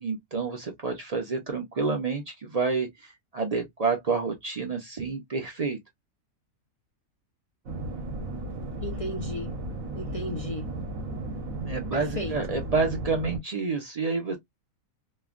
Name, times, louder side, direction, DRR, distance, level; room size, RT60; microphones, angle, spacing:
voice 1, 0.0-5.8 11.7-14.4, right 4 dB, 45° right, 0.5 m, -29 dB
sound 1, 7.7-13.4, right 2 dB, 75° right, 1.3 m, -35 dB
voice 2, 8.8-9.5 9.9-10.7 11.9-12.6, left 1 dB, 50° left, 0.4 m, -35 dB
3.1 x 2.1 x 2.4 m
omnidirectional pair, 1.4 m